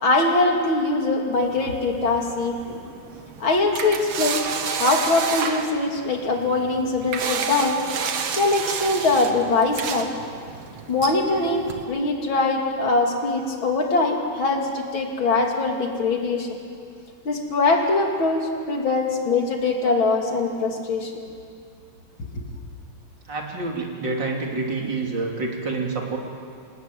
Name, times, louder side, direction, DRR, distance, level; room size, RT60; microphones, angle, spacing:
voice 1, 0.0-2.7 3.4-7.9 8.3-10.1 10.9-16.5 17.3-21.1 22.3-22.4, left 3 dB, 80° left, 1 dB, 3.5 m, -22 dB
sound 1, 1.3-11.8, right 6 dB, 80° right, 2.2 m, -31 dB
voice 2, 23.3-26.2, right 3 dB, 65° right, 0 dB, 3.5 m, -27 dB
27.0 x 19.0 x 9.4 m, 2.4 s
omnidirectional pair, 2.2 m